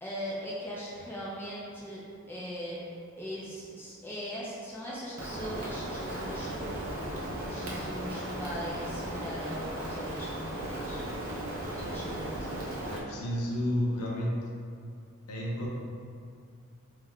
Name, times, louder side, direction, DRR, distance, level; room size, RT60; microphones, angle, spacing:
voice 1, 0.0-2.8 3.2-6.5 7.5-11.0 11.7-12.8, equal, 10° left, -6 dB, 0.3 m, -40 dB
Rain, 5.2-13.0, right 1 dB, 65° right, 0.4 m, -36 dB
voice 2, 12.9-14.4 15.3-15.7, equal, 90° left, -3 dB, 0.5 m, -31 dB
2.2 x 2.1 x 3.5 m, 2.4 s
head